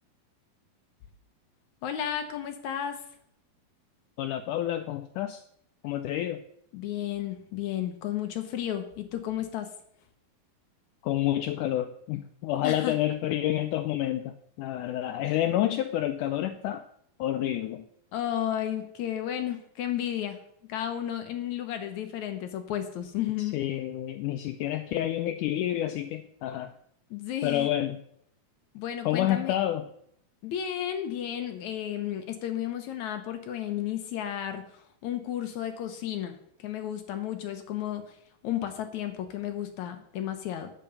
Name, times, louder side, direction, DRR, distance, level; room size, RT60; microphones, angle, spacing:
voice 1, 1.8-3.0 6.7-9.7 12.6-13.0 18.1-20.4 20.7-23.6 27.1-27.7 28.7-29.6 30.4-38.2 38.4-40.7, left 11 dB, 70° left, 7 dB, 1.9 m, -33 dB
voice 2, 4.2-5.4 5.8-6.4 11.0-16.8 17.2-17.9 23.4-26.7 27.4-28.0 29.0-29.9, left 12 dB, 85° left, 9 dB, 1.8 m, -29 dB
9.0 x 8.7 x 6.9 m, 0.69 s
omnidirectional pair, 4.2 m